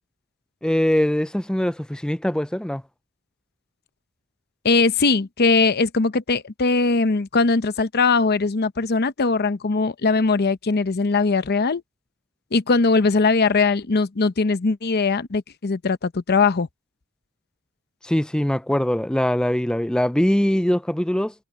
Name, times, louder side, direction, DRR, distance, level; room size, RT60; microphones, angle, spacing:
voice 1, 0.6-2.8 18.0-21.3, equal, 5° left, 0.4 m, -22 dB
voice 2, 4.6-11.8 12.5-16.7, left 4 dB, 50° left, 0.7 m, -20 dB
head